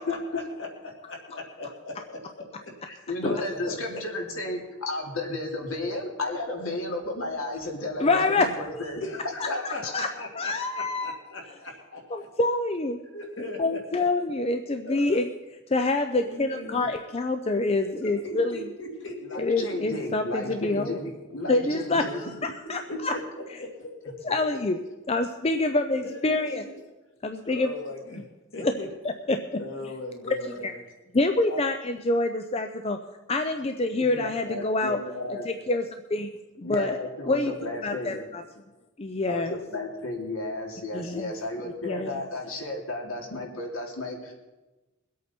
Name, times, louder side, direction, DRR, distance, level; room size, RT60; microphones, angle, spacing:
voice 1, 0.0-4.0 9.0-12.3 13.0-14.1 14.8-15.2 16.2-16.8 17.9-19.4 22.0-22.1 22.6-24.3 26.0-26.8 27.4-28.3 28.5-28.9 29.6-30.8 31.5-31.6, left 2 dB, 60° left, 1 dB, 2.6 m, -39 dB
voice 2, 2.9-9.0 9.5-9.6 19.3-22.2 34.0-35.4 36.6-38.2 39.3-44.3, left 2 dB, 80° left, 0 dB, 2.8 m, -33 dB
voice 3, 8.0-8.5 9.6-10.1 10.4-11.1 12.1-13.0 13.6-15.2 15.7-18.6 19.4-21.0 21.5-22.1 22.7-23.1 24.3-24.8 25.1-26.6 27.2-27.7 28.6-28.7 29.3-29.4 30.2-30.3 31.1-33.0 33.3-35.0 35.3-36.3 36.6-37.0 37.3-37.5 37.8-38.4 39.0-39.6 40.9-41.3 41.8-42.2, left 2 dB, 30° left, 7 dB, 0.5 m, -26 dB
22.0 x 8.4 x 4.4 m, 1.1 s
head